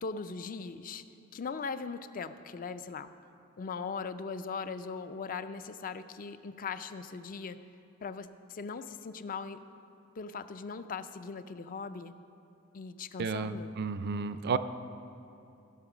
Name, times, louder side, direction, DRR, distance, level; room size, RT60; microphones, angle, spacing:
voice 1, 0.0-1.0 1.3-3.1 3.6-7.6 8.0-9.6 10.2-12.1 12.7-13.7, left 5 dB, 40° left, 12 dB, 0.4 m, -39 dB
voice 2, 13.2-14.6, right 5 dB, 50° right, 13 dB, 0.4 m, -32 dB
15.5 x 5.8 x 6.0 m, 2.8 s
head